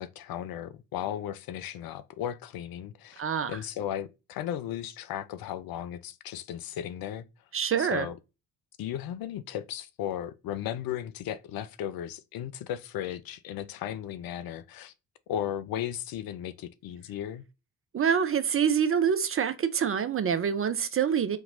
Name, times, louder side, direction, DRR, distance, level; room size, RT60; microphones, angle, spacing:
voice 1, 0.0-3.2 3.5-7.3 7.8-8.1 8.8-14.9 15.3-17.4, left 10 dB, 50° left, 0.6 m, -35 dB
voice 2, 3.2-3.6 7.5-8.1 17.9-21.4, right 7 dB, 30° right, 0.5 m, -26 dB
5.7 x 2.8 x 2.6 m
hypercardioid pair, 50°, 46 cm